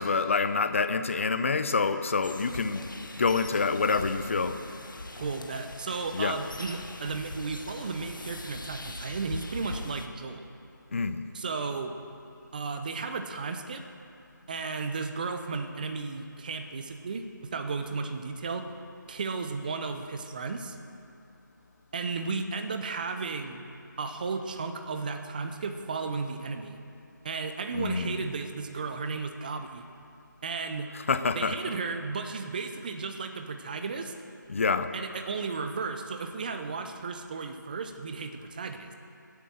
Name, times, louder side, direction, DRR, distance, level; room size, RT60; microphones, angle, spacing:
voice 1, 0.0-2.8 3.2-4.6 6.1-6.4 10.9-11.2 27.7-28.2 31.1-31.5 34.5-34.9, left 4 dB, 40° left, 10 dB, 0.7 m, -27 dB
sound 1, 2.2-10.1, left 2 dB, 75° left, 1.4 m, -41 dB
voice 2, 5.2-10.5 11.3-11.9 12.5-13.8 14.5-18.7 19.1-20.8 21.9-23.6 24.0-26.8 27.2-29.9 30.4-30.9 31.3-34.1 34.9-38.9, right 4 dB, 25° right, 7 dB, 0.8 m, -34 dB
22.5 x 8.4 x 6.4 m, 2.6 s
figure-of-eight pair, 160°, 11 cm